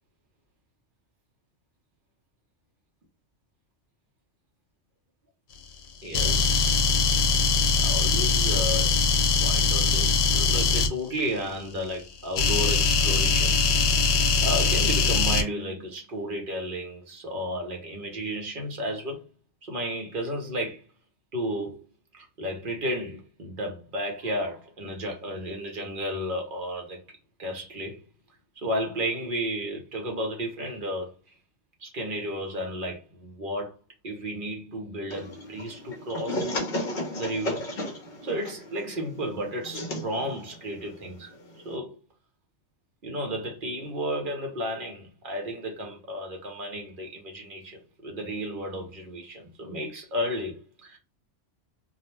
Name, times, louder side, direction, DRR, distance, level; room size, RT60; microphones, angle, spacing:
voice 1, 6.0-6.7 7.7-8.9 9.4-19.2 19.6-20.9 21.3-21.8 22.1-27.0 27.4-28.0 28.6-31.1 31.8-33.8 34.0-36.5 37.2-37.8 38.2-41.3 41.6-42.0 43.0-51.0, equal, 50° right, 0.8 m, -33 dB
sound 1, 6.1-10.9 12.4-15.4, left 4 dB, 85° left, 0.9 m, -22 dB
sound 2, 35.1-41.8, left 1 dB, 50° left, 0.8 m, -35 dB
2.4 x 2.0 x 3.1 m
omnidirectional pair, 1.2 m